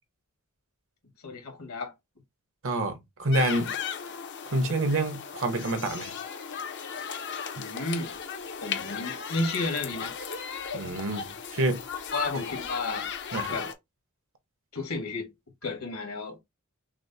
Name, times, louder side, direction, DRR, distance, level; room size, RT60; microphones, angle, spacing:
voice 1, 1.2-1.9 7.5-8.1 8.6-10.1 12.1-13.1 13.5-13.7 14.7-15.3 15.6-16.4, left 2 dB, 70° left, 1.6 m, -32 dB
voice 2, 2.6-3.7 4.4-6.2 10.7-11.8 12.3-12.4 13.3-13.6, right 1 dB, 60° right, 1.0 m, -28 dB
sound 1, 3.3-13.7, left 7 dB, 55° left, 0.7 m, -36 dB
6.0 x 2.1 x 2.6 m
head